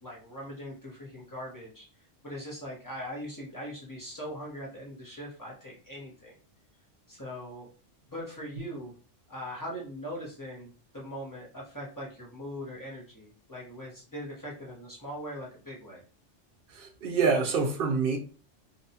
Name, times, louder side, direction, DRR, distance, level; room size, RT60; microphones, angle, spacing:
voice 1, 0.0-6.3 7.1-7.7 8.1-8.9 9.3-16.0, equal, 20° left, 0.7 m, -41 dB
voice 2, 16.7-18.2, right 4 dB, 55° right, 0.7 m, -26 dB
2.7 x 2.2 x 2.7 m
omnidirectional pair, 1.3 m